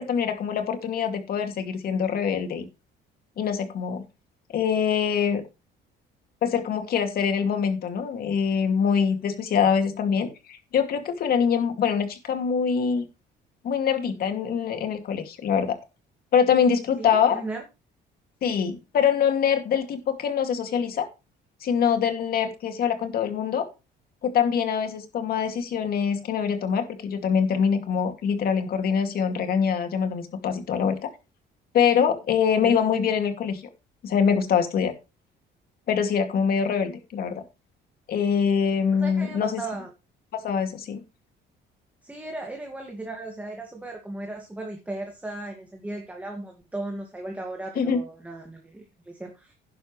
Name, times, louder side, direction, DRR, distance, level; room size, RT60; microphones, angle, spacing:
voice 1, 0.0-2.7 3.4-4.0 4.5-5.4 6.4-13.1 13.6-15.7 16.3-17.4 18.4-21.1 21.6-23.6 24.2-31.1 31.7-33.6 34.0-34.9 35.9-37.4 38.1-39.6 40.3-41.0 47.8-48.0, left 7 dB, 55° left, 7 dB, 2.4 m, -24 dB
voice 2, 17.0-17.6 32.6-32.8 38.9-39.9 42.0-49.5, right 2 dB, 10° right, 1 dB, 2.1 m, -36 dB
11.0 x 10.5 x 3.3 m, 0.28 s
cardioid pair, 145°, 19 cm